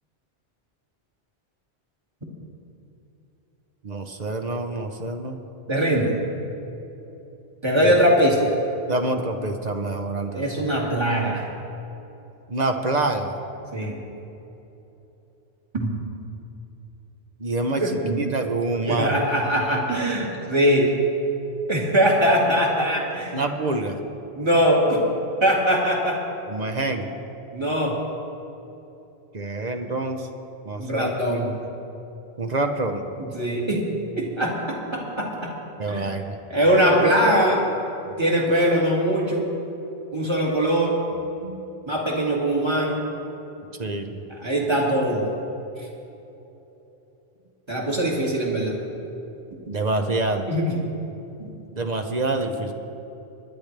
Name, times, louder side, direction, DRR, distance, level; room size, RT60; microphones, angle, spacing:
voice 1, 3.8-5.4 7.8-7.9 8.9-10.5 12.5-13.3 17.4-19.2 23.3-24.0 26.5-27.1 29.3-30.3 30.6-31.5 32.4-33.1 35.8-36.4 41.4-41.6 43.8-44.2 49.7-50.5 51.8-52.7, right 2 dB, 45° right, 5 dB, 0.9 m, -26 dB
voice 2, 5.7-6.1 7.6-8.5 10.3-11.4 13.7-14.0 15.7-15.9 17.8-18.2 18.9-20.9 21.7-23.4 24.4-25.0 25.4-26.2 27.5-28.0 30.8-31.5 33.2-33.9 34.2-35.5 35.9-36.1 36.5-37.7 38.2-39.5 40.1-41.0 41.9-43.0 44.3-45.2 47.7-48.7 50.5-50.8 51.4-51.5, equal, 25° right, -3 dB, 2.2 m, -21 dB
22.0 x 10.5 x 3.3 m, 3.0 s
omnidirectional pair, 1.1 m